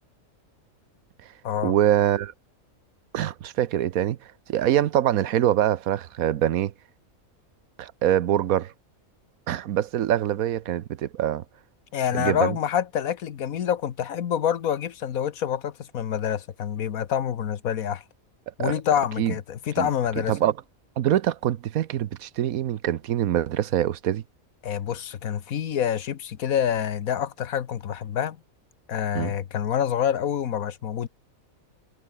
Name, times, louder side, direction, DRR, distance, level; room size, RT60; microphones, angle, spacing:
voice 1, 1.6-2.3 3.1-4.2 4.5-6.7 7.8-8.7 9.5-11.4 12.1-12.5 18.6-18.7 19.2-19.3 19.8-19.9 20.3-20.5 21.0-24.2 29.1-29.3, right 11 dB, 90° right, 1.3 m, -24 dB
voice 2, 11.9-18.0 18.6-20.4 24.6-28.4 28.9-31.1, left 9 dB, 85° left, 1.5 m, -27 dB
omnidirectional pair, 1.4 m